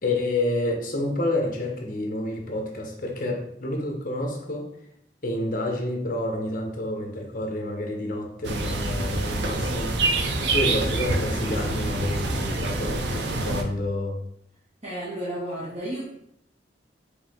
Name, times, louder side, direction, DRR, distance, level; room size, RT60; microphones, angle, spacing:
voice 1, 0.0-4.7 5.2-10.0 10.5-14.2, left 1 dB, 50° left, 2 dB, 0.8 m, -29 dB
sound 1, 8.4-13.6, right 2 dB, 70° right, 0.6 m, -26 dB
voice 2, 14.8-16.1, right 1 dB, 40° right, -9 dB, 1.2 m, -32 dB
4.7 x 2.7 x 3.6 m, 0.73 s
head